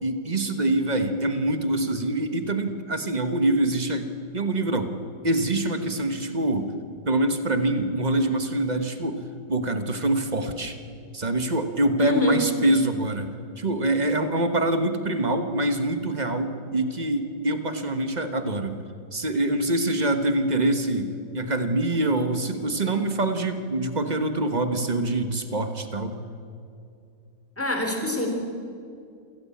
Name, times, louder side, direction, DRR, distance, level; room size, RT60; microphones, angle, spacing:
voice 1, 0.0-4.1 4.3-4.9 5.2-6.7 7.0-9.2 9.5-10.8 11.1-18.8 19.1-26.1, right 1 dB, 25° right, 8 dB, 1.3 m, -25 dB
voice 2, 12.0-12.4 27.6-28.3, left 1 dB, 5° left, 2 dB, 3.4 m, -25 dB
27.5 x 15.0 x 8.6 m, 2.5 s
omnidirectional pair, 1.9 m